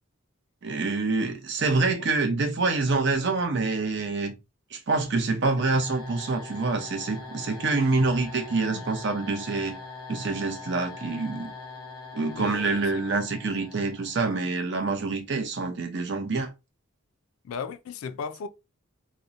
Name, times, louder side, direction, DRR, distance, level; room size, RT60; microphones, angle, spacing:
voice 1, 0.6-4.3 4.7-9.8 10.1-11.5 12.1-16.5, right 3 dB, 55° right, 0.5 m, -26 dB
sound 1, 5.6-14.5, left 3 dB, 20° left, 0.7 m, -42 dB
voice 2, 12.3-12.8 17.4-18.5, left 6 dB, 75° left, 0.3 m, -36 dB
2.8 x 2.1 x 2.4 m
head